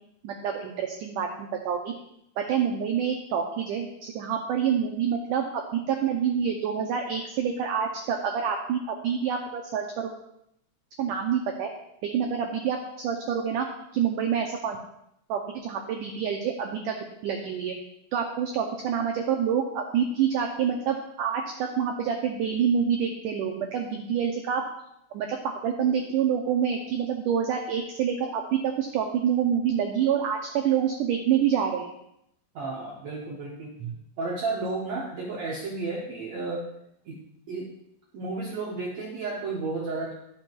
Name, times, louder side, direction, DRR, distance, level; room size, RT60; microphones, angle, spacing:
voice 1, 0.2-1.9 2.4-10.1 11.0-11.7 12.0-13.7 13.9-14.8 15.3-17.7 18.1-24.6 25.1-31.9, right 8 dB, 85° right, 3 dB, 1.8 m, -27 dB
voice 2, 32.5-36.7 37.1-37.2 37.5-37.7 38.1-40.1, right 3 dB, 65° right, -3 dB, 1.7 m, -32 dB
12.5 x 6.4 x 4.5 m, 0.78 s
omnidirectional pair, 4.8 m